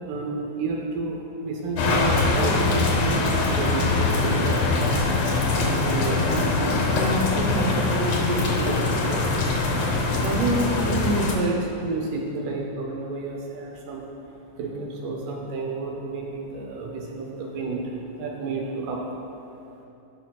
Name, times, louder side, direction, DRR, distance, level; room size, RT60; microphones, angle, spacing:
voice 1, 0.0-5.1 5.7-9.3 10.1-14.0 14.6-17.8 18.2-19.0, right 2 dB, 75° right, 0 dB, 2.2 m, -29 dB
sound 1, 1.8-11.3, left 3 dB, 65° left, 1.7 m, -23 dB
16.5 x 5.8 x 2.3 m, 2.8 s
omnidirectional pair, 4.0 m